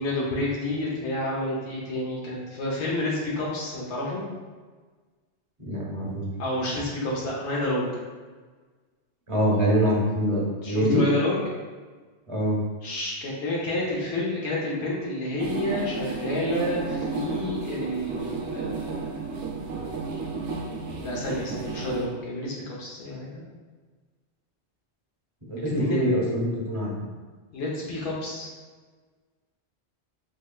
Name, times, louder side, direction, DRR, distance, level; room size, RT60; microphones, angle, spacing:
voice 1, 0.0-4.2 6.4-7.9 10.6-11.4 12.8-19.1 21.0-22.5 22.8-23.4 25.6-26.1 27.5-28.5, left 1 dB, 80° left, -5 dB, 1.1 m, -29 dB
voice 2, 5.7-6.3 9.3-11.0 12.3-12.6 25.5-26.9, equal, 35° right, -5 dB, 0.7 m, -24 dB
sound 1, 15.4-22.1, right 4 dB, 80° right, 0.9 m, -32 dB
3.8 x 3.1 x 2.2 m, 1.4 s
omnidirectional pair, 1.1 m